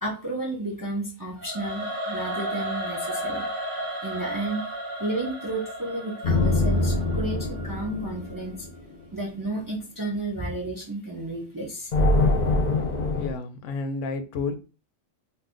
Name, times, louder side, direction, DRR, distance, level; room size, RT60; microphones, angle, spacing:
voice 1, 0.0-3.5 4.0-4.6 5.0-8.7 9.1-11.9, right 2 dB, 30° right, -3 dB, 0.4 m, -32 dB
Singing / Musical instrument, 1.4-8.5, right 1 dB, 85° right, 1.0 m, -34 dB
sound 1, 6.2-8.9 11.9-13.3, left 2 dB, 45° left, 0.8 m, -24 dB
voice 2, 13.2-14.5, left 4 dB, 85° left, 9 dB, 0.9 m, -31 dB
2.5 x 2.5 x 3.6 m, 0.34 s
omnidirectional pair, 1.2 m